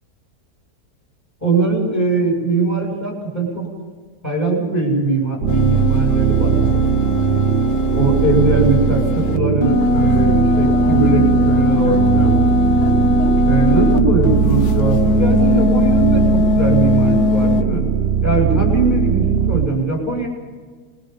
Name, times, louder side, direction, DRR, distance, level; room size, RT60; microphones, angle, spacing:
voice 1, 1.4-3.7 4.2-6.9 7.9-12.4 13.4-17.9 18.2-20.3, right 3 dB, 10° left, -1 dB, 6.8 m, -20 dB
sound 1, 5.4-19.7, right 8 dB, 50° right, 0.9 m, -19 dB
sound 2, 5.5-14.0 14.2-17.6, left 3 dB, 65° left, 1.5 m, -19 dB
29.0 x 21.5 x 5.5 m, 1.5 s
omnidirectional pair, 1.8 m